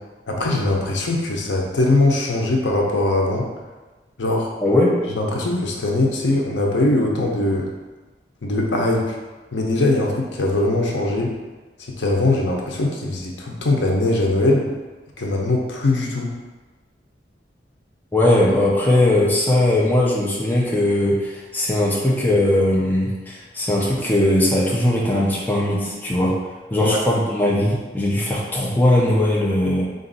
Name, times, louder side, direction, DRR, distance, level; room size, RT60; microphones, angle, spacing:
voice 1, 0.3-3.5 4.2-4.5 5.1-7.7 8.4-9.2 9.5-11.3 11.9-14.7 15.2-16.3 26.8-27.0, left 2 dB, 80° left, 0 dB, 0.7 m, -21 dB
voice 2, 4.6-4.9 18.1-26.4 26.7-29.8, left 1 dB, 10° left, -5 dB, 0.5 m, -19 dB
4.0 x 2.5 x 3.9 m, 1.2 s
head